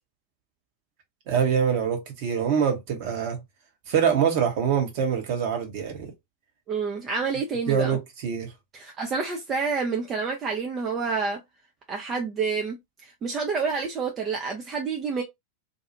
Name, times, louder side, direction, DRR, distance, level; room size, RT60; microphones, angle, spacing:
voice 1, 1.3-3.4 3.9-6.1 7.7-8.5, right 7 dB, 45° right, 1.0 m, -24 dB
voice 2, 6.7-8.0 8.7-11.4 11.9-12.8 13.0-15.2, right 5 dB, 25° right, 0.5 m, -28 dB
2.6 x 2.4 x 2.8 m
figure-of-eight pair, 90°, 0 cm